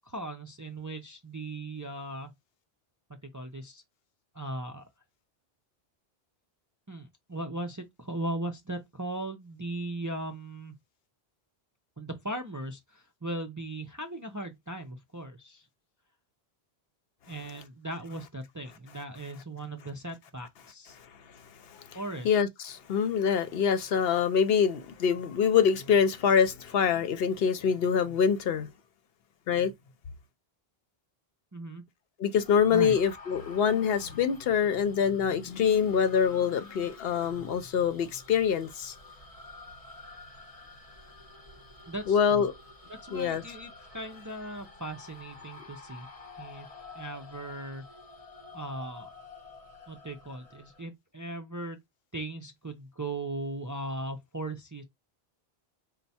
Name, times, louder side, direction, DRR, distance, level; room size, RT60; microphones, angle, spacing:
voice 1, 0.1-2.3 3.3-3.8 4.3-4.8 6.9-10.7 12.0-15.7 17.3-21.0 21.9-22.3 31.5-31.8 32.7-33.0 41.9-42.5 42.9-46.1 46.4-46.7 46.9-47.8 48.5-49.1 49.9-51.8 52.1-54.8, right 1 dB, 25° right, 0.4 m, -38 dB
voice 2, 22.2-28.7 29.5-29.7 32.2-38.9 42.1-42.5 43.1-43.4, left 7 dB, 70° left, 0.8 m, -25 dB
sound 1, 32.4-50.8, left 3 dB, 35° left, 1.1 m, -50 dB
4.4 x 2.1 x 4.1 m
omnidirectional pair, 1.1 m